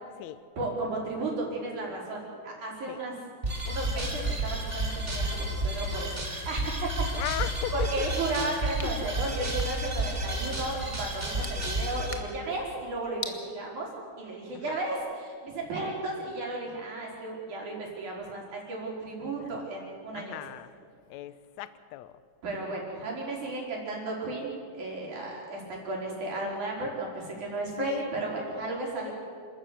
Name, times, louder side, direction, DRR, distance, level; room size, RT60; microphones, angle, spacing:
voice 1, 0.6-3.1 3.6-6.9 7.2-7.3 7.7-13.9 14.2-20.4 22.4-29.1, right 2 dB, 70° right, -3 dB, 6.1 m, -34 dB
sound 1, 3.4-12.2, right 1 dB, 20° right, 3.3 m, -31 dB
voice 2, 7.1-8.1 8.8-9.4 14.5-14.8 19.4-19.6 20.1-20.7 21.1-22.2 27.8-28.1 29.0-29.1, left 14 dB, 75° left, 14 dB, 1.9 m, -37 dB
sound 2, 8.2-13.4, left 2 dB, 20° left, 0.9 m, -45 dB
28.5 x 13.5 x 8.2 m, 2.2 s
omnidirectional pair, 3.5 m